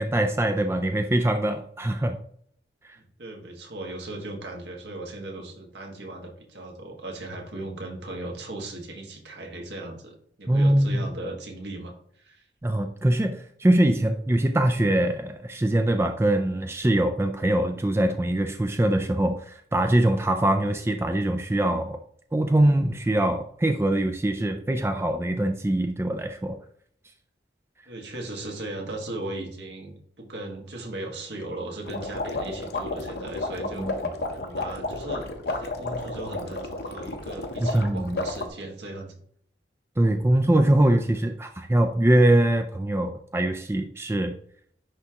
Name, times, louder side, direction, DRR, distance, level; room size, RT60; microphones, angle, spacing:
voice 1, 0.0-2.2 2.9-3.0 10.5-11.0 12.6-22.0 22.3-26.6 33.8-33.9 37.6-38.2 40.0-44.3, right 1 dB, 15° right, 6 dB, 0.3 m, -23 dB
voice 2, 2.9-12.5 27.9-33.9 34.3-39.1, right 2 dB, 75° right, 1 dB, 1.7 m, -37 dB
sound 1, 31.9-38.5, left 2 dB, 60° left, 0.8 m, -32 dB
10.0 x 3.6 x 2.9 m, 0.62 s
head